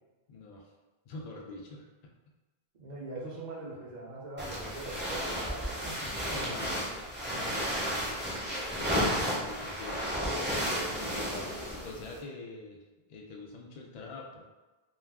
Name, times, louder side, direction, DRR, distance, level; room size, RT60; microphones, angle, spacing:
voice 1, 0.3-0.7 1.0-2.1 6.3-10.2 11.8-12.8 13.1-14.4, left 2 dB, 55° left, 0 dB, 0.5 m, -44 dB
voice 2, 2.8-6.5 11.0-11.6, right 2 dB, 50° right, -5 dB, 0.7 m, -43 dB
sound 1, 4.4-12.2, equal, 10° right, 0.6 m, -33 dB
2.3 x 2.3 x 3.4 m, 1.2 s
omnidirectional pair, 1.0 m